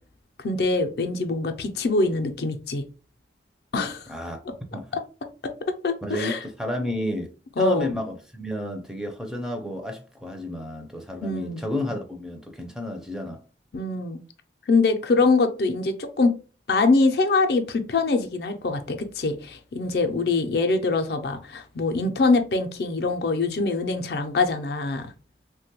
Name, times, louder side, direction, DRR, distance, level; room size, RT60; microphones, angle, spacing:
voice 1, 0.4-2.8 3.7-4.1 4.9-5.0 5.8-6.4 7.6-7.9 11.2-11.6 13.7-14.2 14.7-16.4 16.7-25.1, left 3 dB, 60° left, 0.4 m, -23 dB
voice 2, 4.1-4.4 4.7-4.9 6.0-13.4, left 1 dB, 5° right, 0.4 m, -31 dB
3.3 x 2.2 x 2.8 m
head